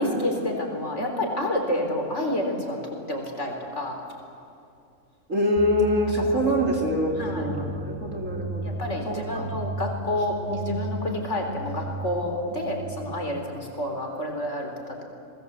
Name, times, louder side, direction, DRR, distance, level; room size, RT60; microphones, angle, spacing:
voice 1, 0.0-2.8 3.1-4.0 6.3-6.5 7.2-7.5 8.6-15.0, left 1 dB, 55° left, 2 dB, 4.2 m, -29 dB
voice 2, 5.3-8.7 9.1-9.5, equal, 65° right, 0 dB, 3.9 m, -25 dB
sound 1, 5.6-13.3, right 1 dB, ahead, 1.3 m, -36 dB
28.0 x 20.5 x 8.1 m, 2.5 s
omnidirectional pair, 1.4 m